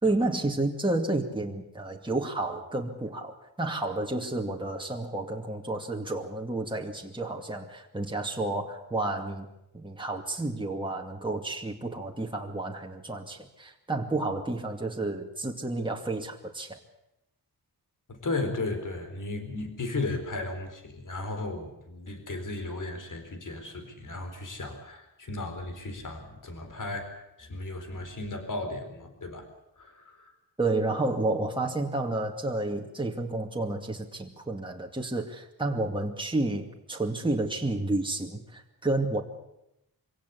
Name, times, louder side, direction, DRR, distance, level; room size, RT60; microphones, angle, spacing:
voice 1, 0.0-9.5 9.7-16.8 30.6-39.2, right 2 dB, 15° right, 1 dB, 2.4 m, -31 dB
voice 2, 18.1-29.5 29.8-30.2, left 2 dB, 55° left, 6 dB, 4.3 m, -35 dB
24.5 x 17.0 x 8.4 m, 0.86 s
wide cardioid pair, 100°, 38 cm